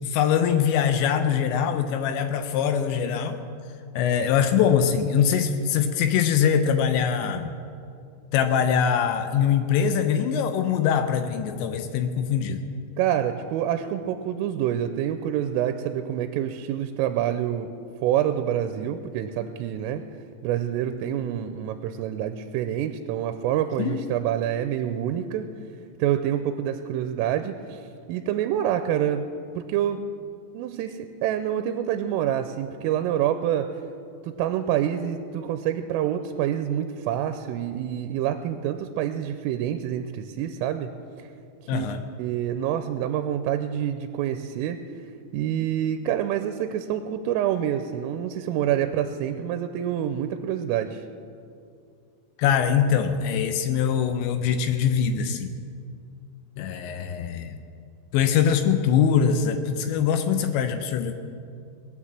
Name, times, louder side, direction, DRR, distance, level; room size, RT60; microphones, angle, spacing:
voice 1, 0.0-3.4 4.0-7.5 8.3-12.6 23.8-24.0 41.7-42.1 52.4-55.5 56.6-57.6 58.1-61.1, left 7 dB, 80° left, 8 dB, 2.7 m, -23 dB
voice 2, 13.0-17.7 18.0-20.0 20.4-25.5 26.0-29.2 29.6-30.0 30.5-33.7 34.2-40.9 41.2-41.3 41.7-41.9 42.2-44.8 45.3-51.0, right 10 dB, 85° right, 9 dB, 3.2 m, -27 dB
19.5 x 9.8 x 7.3 m, 2.4 s
omnidirectional pair, 5.9 m